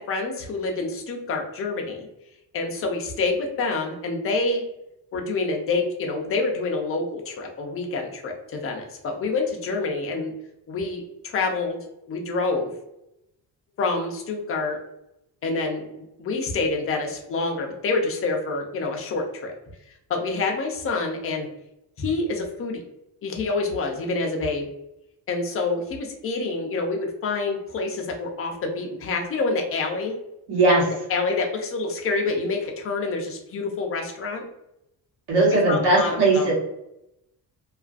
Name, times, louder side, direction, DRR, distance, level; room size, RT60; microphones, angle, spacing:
voice 1, 0.0-2.1 2.5-4.6 5.1-10.3 10.7-11.8 12.1-12.7 13.8-14.8 15.4-19.5 20.1-21.5 22.0-22.8 23.2-24.7 25.3-30.1 31.1-34.4 35.5-36.5, left 3 dB, 35° left, 2 dB, 0.5 m, -27 dB
voice 2, 30.5-30.9 35.3-36.5, right 2 dB, 80° right, -4 dB, 1.2 m, -19 dB
2.3 x 2.3 x 2.4 m, 0.84 s
cardioid pair, 165°, 40 cm